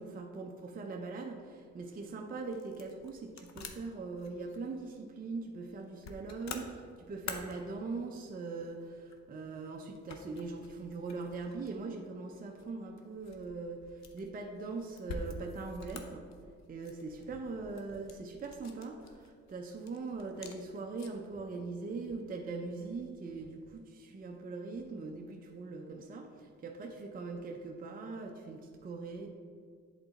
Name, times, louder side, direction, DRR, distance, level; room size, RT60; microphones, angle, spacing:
voice 1, 0.0-16.3 16.7-29.3, right 3 dB, 30° right, 1 dB, 0.6 m, -41 dB
sound 1, 1.8-21.3, left 4 dB, 65° left, 0.8 m, -50 dB
7.9 x 4.0 x 4.0 m, 2.2 s
cardioid pair, 90°, 30 cm